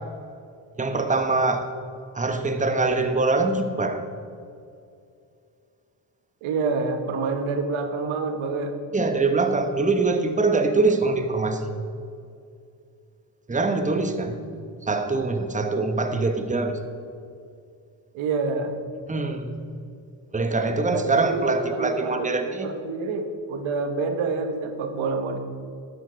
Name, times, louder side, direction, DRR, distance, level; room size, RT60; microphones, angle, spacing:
voice 1, 0.8-1.7 2.1-4.0 8.9-11.7 13.5-14.4 14.8-16.8 19.1-19.5 20.3-22.7, right 3 dB, 15° right, 7 dB, 1.1 m, -23 dB
voice 2, 6.4-8.7 18.1-18.8 20.9-25.4, right 4 dB, 85° right, 6 dB, 1.3 m, -28 dB
12.5 x 8.6 x 5.1 m, 2.4 s
cardioid pair, 70°, 47 cm